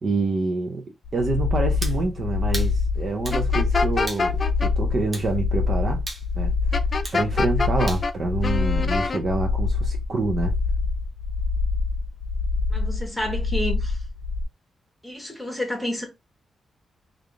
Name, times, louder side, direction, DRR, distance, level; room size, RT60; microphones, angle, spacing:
voice 1, 0.0-6.0 6.4-6.5 7.1-10.5, right 3 dB, 40° right, 0.6 m, -27 dB
sound 1, 1.0-14.4, left 4 dB, 65° left, 0.6 m, -25 dB
sound 2, 1.8-2.0 2.5-2.7 3.3-3.4 4.1-4.3 5.1-5.3 6.1-6.3 7.0-7.2 7.9-8.1, right 1 dB, 25° right, 0.9 m, -34 dB
sound 3, 3.3-4.7 6.7-8.1 8.4-9.2, left 4 dB, 35° left, 0.3 m, -26 dB
voice 2, 12.7-14.0 15.0-16.1, left 1 dB, 5° left, 1.1 m, -30 dB
3.4 x 2.5 x 3.3 m
wide cardioid pair, 150°, 0 cm